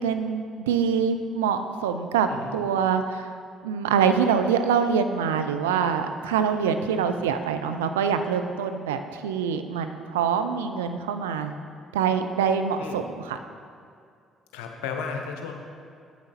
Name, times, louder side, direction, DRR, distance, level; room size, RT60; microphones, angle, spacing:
voice 1, 0.0-3.3 3.6-11.5 11.9-13.4, right 7 dB, 85° right, 8 dB, 0.4 m, -25 dB
voice 2, 14.5-15.5, left 5 dB, 80° left, 3 dB, 0.8 m, -34 dB
8.7 x 7.1 x 4.2 m, 2.3 s
hypercardioid pair, 50°, 0 cm